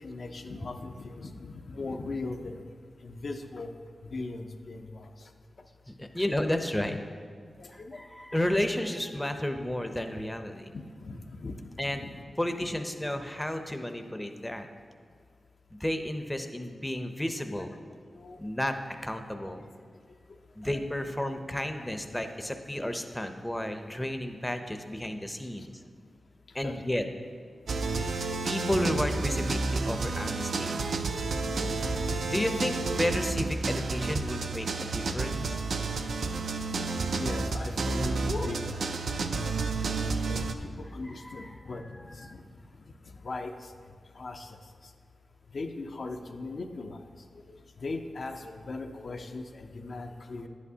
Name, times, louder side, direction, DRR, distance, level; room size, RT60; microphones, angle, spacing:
voice 1, 0.0-2.6 3.0-3.7 4.0-5.3 6.2-6.3 7.6-8.0 10.7-12.2 12.6-12.7 17.6-17.7 18.1-18.4 19.4-19.5 20.6-20.9 21.3-21.8 22.4-22.6 25.6-25.7 26.6-26.7 27.7-27.9 30.6-30.8 31.3-32.2 32.6-32.7 35.5-35.6 37.1-38.9 39.4-39.6 40.2-42.4 43.1-43.7 44.1-44.6 45.5-47.0 47.8-50.5, left 3 dB, 65° left, 4 dB, 0.5 m, -39 dB
voice 2, 5.9-7.0 7.7-10.7 11.8-12.1 12.4-14.7 15.7-17.7 18.4-18.8 19.0-19.7 20.6-25.7 26.5-27.0 28.4-30.8 31.6-31.7 32.3-35.6 41.2-41.5 41.9-42.0, left 1 dB, 10° left, 6 dB, 0.6 m, -32 dB
sound 1, 27.7-40.5, right 3 dB, 85° right, 0.4 m, -30 dB
10.5 x 8.4 x 2.8 m, 2.1 s
cardioid pair, 70°, 0 cm